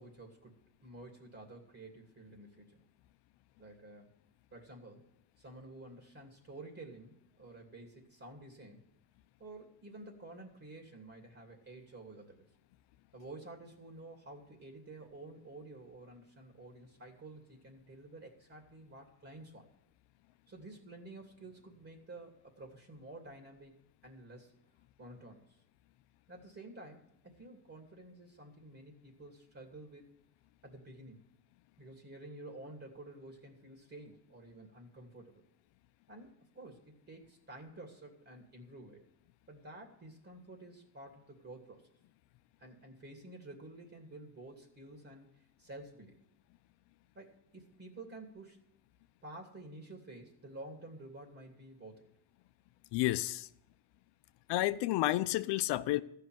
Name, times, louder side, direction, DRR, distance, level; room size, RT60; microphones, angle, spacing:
voice 1, 0.0-2.8 3.6-4.1 4.5-5.1 5.4-8.8 9.4-12.5 13.1-19.7 20.5-23.8 24.0-24.5 25.0-25.6 26.3-30.1 30.6-31.3 31.8-35.4 36.1-39.0 39.5-41.9 42.6-45.3 45.6-46.2 47.1-48.6 49.2-52.1, right 2 dB, 30° right, 2.8 m, -51 dB
voice 2, 52.9-53.5 54.5-56.0, left 16 dB, 70° left, 0.8 m, -30 dB
14.5 x 5.8 x 9.3 m
supercardioid pair, 95°, 43 cm